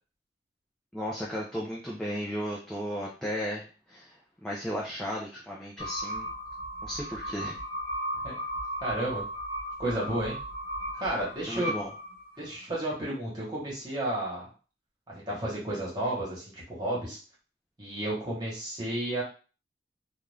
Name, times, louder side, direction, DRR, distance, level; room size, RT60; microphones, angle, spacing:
voice 1, 0.9-6.3 6.8-7.6 11.5-11.9, equal, 5° left, -5 dB, 0.4 m, -35 dB
sound 1, 5.8-12.5, equal, 60° right, 0.8 m, -36 dB
voice 2, 8.8-9.2 9.8-10.4 11.0-11.7 12.4-14.5 15.1-17.2 17.8-19.2, right 1 dB, 25° right, -5 dB, 1.2 m, -32 dB
2.5 x 2.3 x 3.2 m, 0.36 s
head